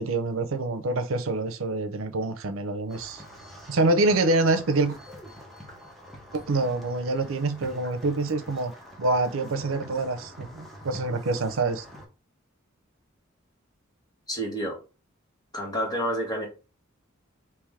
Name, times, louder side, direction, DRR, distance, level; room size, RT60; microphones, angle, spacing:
voice 1, 0.0-3.2 3.7-5.0 6.3-8.7 9.0-11.8, right 2 dB, 85° right, 0.6 m, -26 dB
sound 1, 2.9-12.1, equal, ahead, 0.9 m, -46 dB
voice 2, 14.3-14.8 15.5-16.5, equal, 20° left, 1.2 m, -29 dB
3.4 x 2.9 x 3.5 m
head